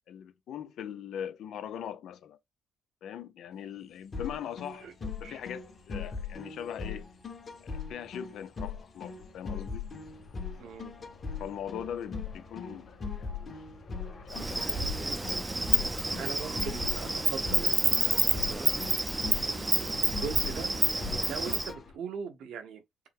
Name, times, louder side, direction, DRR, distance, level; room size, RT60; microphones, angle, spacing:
voice 1, 0.1-2.4 3.0-7.1 7.6-9.9 11.4-13.5 13.9-14.0 14.3-15.4, left 9 dB, 75° left, 0.5 m, -41 dB
sound 1, 3.6-22.0, left 3 dB, 60° left, 1.4 m, -52 dB
sound 2, 4.1-21.8, left 5 dB, 40° left, 1.4 m, -40 dB
voice 2, 10.6-10.9 16.2-18.7 19.2-22.8, right 6 dB, 75° right, 0.9 m, -41 dB
Insect, 14.3-21.7, right 2 dB, 15° right, 0.5 m, -29 dB
4.6 x 2.2 x 3.6 m
cardioid pair, 90°, 0 cm